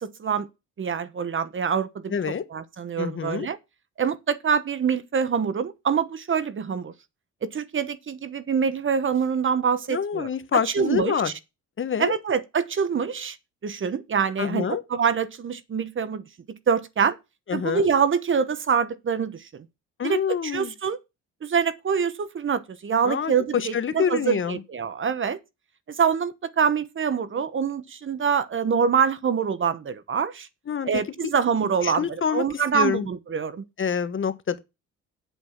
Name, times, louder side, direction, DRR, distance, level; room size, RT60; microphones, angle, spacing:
voice 1, 0.0-0.5 0.8-2.1 2.5-3.6 4.0-6.9 7.4-11.3 12.0-13.4 13.6-14.6 14.9-17.2 17.5-19.4 20.0-21.0 21.4-25.4 25.9-30.5 30.8-33.6, right 6 dB, 40° right, 1.1 m, -25 dB
voice 2, 2.1-2.5 3.0-3.5 9.9-11.3 11.8-12.1 14.4-14.8 17.5-17.9 20.0-20.7 23.0-24.6 30.7-31.0 31.8-33.1 33.8-34.6, left 7 dB, 40° left, 1.3 m, -26 dB
8.1 x 7.9 x 5.9 m
cardioid pair, 90°, 30 cm